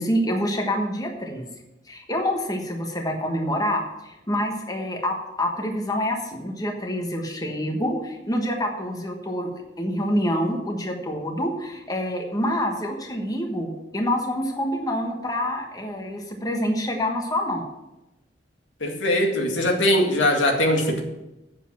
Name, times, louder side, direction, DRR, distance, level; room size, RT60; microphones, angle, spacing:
voice 1, 0.0-1.5 1.9-17.6, equal, 20° left, 2 dB, 1.3 m, -27 dB
voice 2, 18.8-21.0, left 1 dB, 90° left, 1 dB, 2.0 m, -21 dB
8.1 x 7.4 x 7.3 m, 0.97 s
head